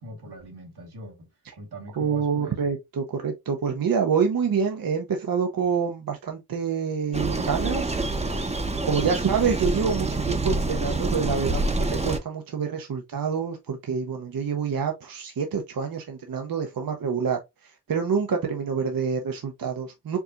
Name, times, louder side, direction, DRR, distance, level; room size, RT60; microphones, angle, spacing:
voice 1, 0.0-2.6, right 1 dB, 85° right, 1.5 m, -42 dB
voice 2, 2.0-20.2, right 6 dB, 65° right, 0.7 m, -27 dB
sound 1, 7.1-12.2, right 2 dB, 15° right, 0.7 m, -27 dB
4.6 x 2.8 x 2.4 m
wide cardioid pair, 70°, 38 cm